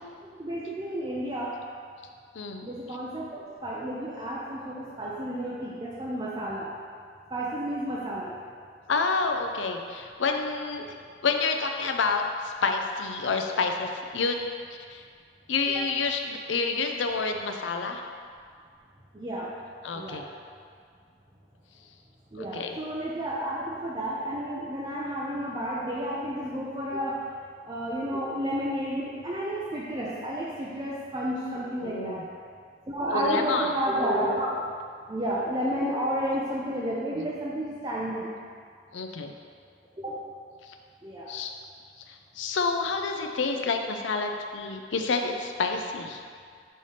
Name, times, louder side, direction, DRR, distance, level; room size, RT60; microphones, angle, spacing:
voice 1, 0.2-1.5 2.6-6.7 7.3-8.4 15.7-15.8 19.1-19.5 19.9-20.2 22.3-27.2 27.6-32.3 32.9-34.6 35.1-38.3 40.0-40.2 41.0-41.3, right 1 dB, 25° right, -6 dB, 0.5 m, -31 dB
voice 2, 2.3-2.7 8.1-8.2 8.9-10.9 11.2-14.4 14.9-15.0 15.5-18.0 19.8-20.2 22.4-22.8 31.8-32.2 33.1-33.7 38.9-39.3 40.7-40.8 41.3-41.5 42.1-46.2, left 4 dB, 80° left, 4 dB, 0.5 m, -28 dB
5.5 x 3.2 x 5.6 m, 2.1 s
head